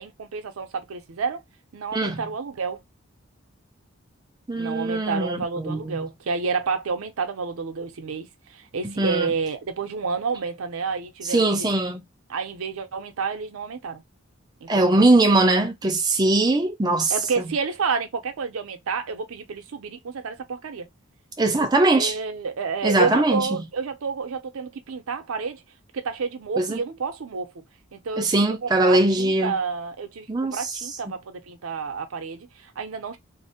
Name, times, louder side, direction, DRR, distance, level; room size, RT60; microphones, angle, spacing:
voice 1, 0.0-1.4 1.7-2.8 4.6-11.7 12.3-14.0 14.6-14.7 15.0-15.1 17.1-20.9 21.6-25.6 25.9-27.5 27.9-33.2, right 5 dB, 80° right, 0.5 m, -30 dB
voice 2, 1.9-2.2 4.5-6.1 8.8-9.3 11.2-12.0 14.7-17.1 21.4-22.2 22.8-23.6 26.6-26.8 28.2-29.6 30.3-30.8, right 2 dB, 20° right, 0.4 m, -21 dB
2.5 x 2.0 x 2.7 m
head